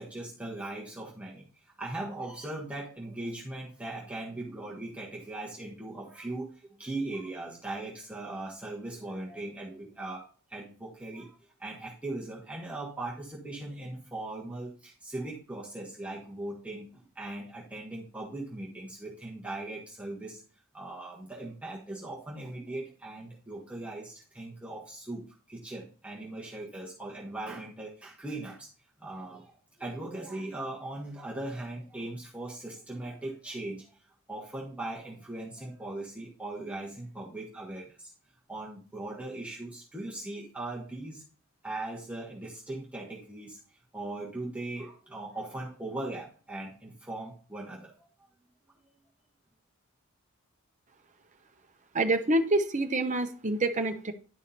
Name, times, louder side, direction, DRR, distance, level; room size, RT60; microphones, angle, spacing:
voice 1, 0.0-1.4 1.8-11.3 11.6-20.4 20.7-28.7 29.0-34.0 34.3-38.1 38.5-41.2 41.6-43.6 43.9-47.9, right 2 dB, 5° right, -5 dB, 1.4 m, -39 dB
voice 2, 51.9-54.1, right 2 dB, 35° right, 6 dB, 0.9 m, -27 dB
11.0 x 5.0 x 4.2 m, 0.39 s
head